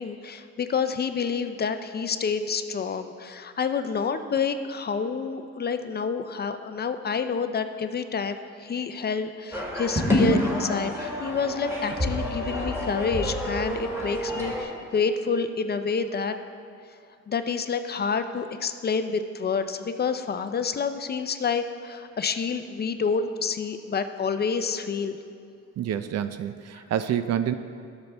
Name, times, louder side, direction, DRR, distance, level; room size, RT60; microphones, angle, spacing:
voice 1, 0.0-16.3 17.3-25.2, left 5 dB, 35° left, 9 dB, 0.5 m, -28 dB
sound 1, 9.5-14.6, equal, 10° right, 2.2 m, -28 dB
voice 2, 25.8-27.5, right 10 dB, 60° right, 11 dB, 0.5 m, -27 dB
12.0 x 6.9 x 3.3 m, 2.3 s
cardioid pair, 90°, 30 cm